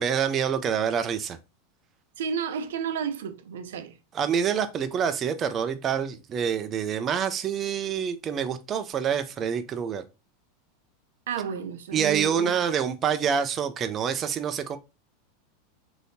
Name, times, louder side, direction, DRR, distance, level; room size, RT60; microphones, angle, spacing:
voice 1, 0.0-1.4 4.1-10.0 11.9-14.8, right 7 dB, 30° right, 0.3 m, -26 dB
voice 2, 2.2-4.0 11.3-12.5, right 7 dB, 85° right, 0.5 m, -32 dB
3.4 x 2.6 x 2.6 m
supercardioid pair, 135°, 0 cm